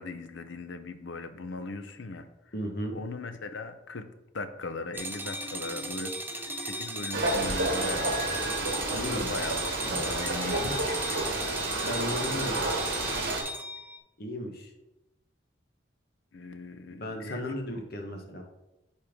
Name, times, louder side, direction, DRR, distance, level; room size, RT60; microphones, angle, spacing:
voice 1, 0.0-2.3 2.9-8.2 8.9-11.3 16.3-17.4, left 3 dB, 75° left, 10 dB, 0.7 m, -39 dB
voice 2, 2.5-3.0 8.9-9.4 11.8-12.7 14.2-14.7 17.0-18.4, equal, 50° left, 3 dB, 1.2 m, -35 dB
sound 1, 4.9-14.0, right 1 dB, 10° right, 0.4 m, -37 dB
sound 2, 5.2-7.6, right 1 dB, 80° right, 1.1 m, -45 dB
sound 3, 7.1-13.4, right 2 dB, 55° right, 1.6 m, -30 dB
9.9 x 4.4 x 3.7 m, 0.95 s
head